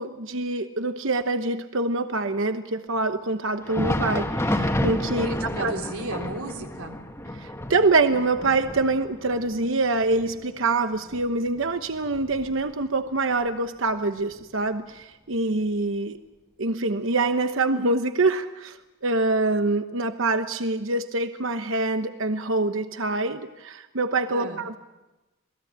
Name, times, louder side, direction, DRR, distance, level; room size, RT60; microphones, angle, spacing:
voice 1, 0.0-5.7 7.3-16.2 16.6-24.8, right 3 dB, 65° right, 9 dB, 1.0 m, -25 dB
Thunder, 3.5-13.0 13.3-13.5 14.2-14.3 15.3-15.4, left 1 dB, 15° left, 1.8 m, -31 dB
voice 2, 5.2-7.0 24.3-24.6, right 2 dB, 90° right, 3 dB, 3.7 m, -33 dB
27.5 x 19.5 x 8.8 m, 1.1 s
head